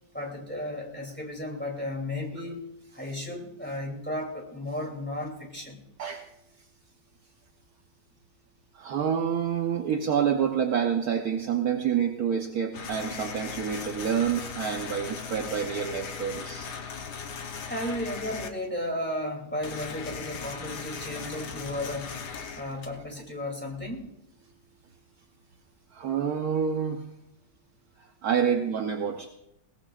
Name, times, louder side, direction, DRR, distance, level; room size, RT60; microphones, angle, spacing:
voice 1, 0.1-2.7 2.9-5.8 17.2-17.3 17.7-22.1 22.5-24.1, left 1 dB, 5° left, 0 dB, 2.8 m, -34 dB
voice 2, 8.7-16.7 25.9-27.0 28.0-29.3, right 7 dB, 65° right, 3 dB, 1.4 m, -28 dB
sound 1, 12.7-18.5 19.6-23.3, left 6 dB, 75° left, 1.6 m, -38 dB
21.5 x 17.5 x 2.5 m, 0.84 s
omnidirectional pair, 1.8 m